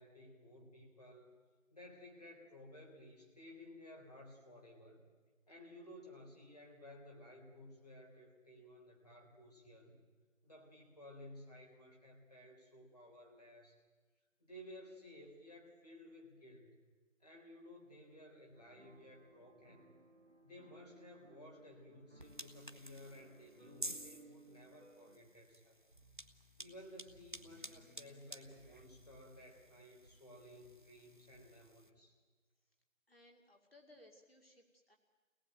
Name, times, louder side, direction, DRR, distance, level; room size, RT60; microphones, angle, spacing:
voice 1, 0.0-1.3 1.7-5.1 5.5-10.0 10.4-13.8 14.4-16.8 17.2-19.9 20.4-25.8 26.6-32.2, left 1 dB, 30° left, -1 dB, 4.0 m, -56 dB
sound 1, 18.5-25.2, right 3 dB, 55° right, 2.1 m, -63 dB
sound 2, 22.2-31.9, right 1 dB, 40° right, 1.1 m, -52 dB
sound 3, 25.9-31.6, right 1 dB, 15° left, 2.9 m, -66 dB
voice 2, 33.1-35.0, left 1 dB, 50° left, 2 dB, 2.6 m, -63 dB
25.0 x 18.5 x 9.1 m, 1.3 s
figure-of-eight pair, 175°, 39 cm